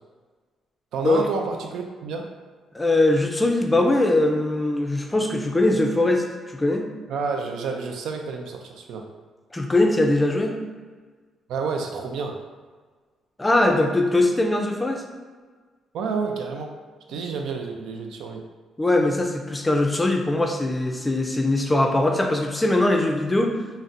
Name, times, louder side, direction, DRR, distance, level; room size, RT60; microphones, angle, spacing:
voice 1, 0.9-2.3 7.1-9.0 11.5-12.4 15.9-16.7 17.1-18.4, right 5 dB, 80° right, 3 dB, 0.4 m, -29 dB
voice 2, 2.7-6.9 9.5-10.6 13.4-15.0 18.8-23.6, left 2 dB, 15° left, 2 dB, 0.4 m, -21 dB
3.9 x 2.1 x 2.5 m, 1.5 s
cardioid pair, 90°, 0 cm